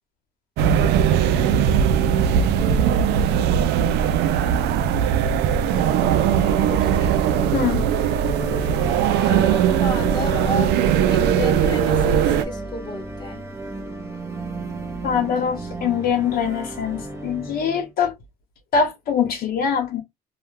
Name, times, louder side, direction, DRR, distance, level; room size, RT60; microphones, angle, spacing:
sound 1, 0.6-12.4, right 8 dB, 80° right, 0.4 m, -19 dB
voice 1, 1.2-1.5 6.3-7.3 9.2-10.8 11.1-13.4, left 1 dB, 25° left, 0.9 m, -33 dB
sound 2, 5.1-17.9, right 2 dB, 15° right, 0.7 m, -34 dB
voice 2, 7.5-7.9 15.0-18.1 18.7-20.0, left 7 dB, 65° left, 0.8 m, -23 dB
2.2 x 2.2 x 3.2 m
cardioid pair, 110°, 17 cm